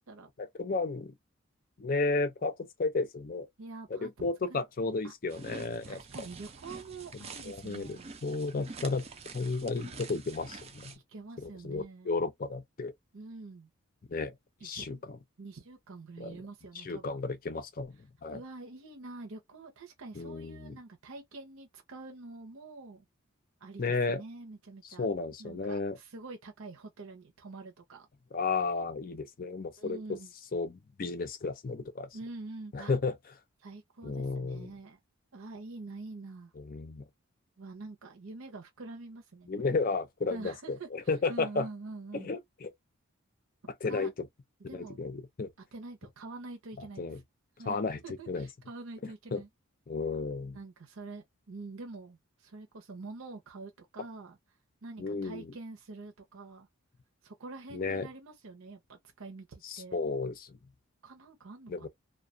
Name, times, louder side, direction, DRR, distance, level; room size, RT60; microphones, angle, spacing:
voice 1, 0.4-1.1 1.8-3.5 3.9-6.3 7.5-9.0 9.3-10.9 11.4-12.9 14.1-14.3 14.6-15.0 16.2-16.4 16.8-18.4 20.2-20.7 23.8-24.2 25.0-26.0 28.3-30.0 30.5-32.1 32.7-33.1 34.0-34.7 36.6-37.0 39.5-41.7 42.1-42.7 43.8-44.1 44.7-45.5 46.8-47.2 47.7-48.0 48.3-48.5 49.3-49.4 49.9-50.6 55.0-55.5 57.7-58.1 59.6-60.6 61.7-61.9, left 3 dB, 40° left, 0.4 m, -33 dB
voice 2, 3.6-5.1 5.9-8.1 11.1-12.1 13.1-13.7 14.6-15.0 15.4-17.2 18.3-23.1 23.6-25.1 25.4-28.1 29.8-30.3 32.1-32.9 33.6-35.0 35.3-36.5 37.6-39.8 40.3-40.9 41.3-42.3 43.6-44.1 44.7-45.0 45.6-47.1 47.6-47.8 48.0-49.5 50.5-54.4 54.8-56.7 57.2-60.0 61.0-61.9, right 3 dB, 75° right, 0.7 m, -46 dB
sound 1, 5.3-11.0, right 4 dB, 30° right, 0.4 m, -47 dB
2.3 x 2.2 x 2.4 m
head